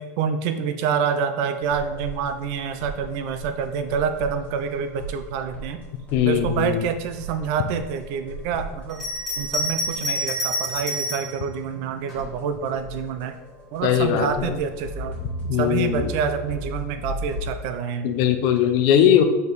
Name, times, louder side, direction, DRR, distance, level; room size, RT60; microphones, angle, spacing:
voice 1, 0.0-5.8 6.2-9.0 9.4-13.3 13.7-15.2 15.6-18.1 18.9-19.1, right 7 dB, 40° right, 9 dB, 0.5 m, -27 dB
sound 1, 1.6-17.5, right 1 dB, 15° left, 1.6 m, -37 dB
voice 2, 6.1-6.8 13.8-14.5 15.5-16.1 18.0-19.2, left 10 dB, 40° left, 8 dB, 0.5 m, -20 dB
Bell, 8.9-11.4 12.1-13.0, left 1 dB, ahead, 1.9 m, -28 dB
5.2 x 4.6 x 4.0 m, 1.1 s
supercardioid pair, 165°, 9 cm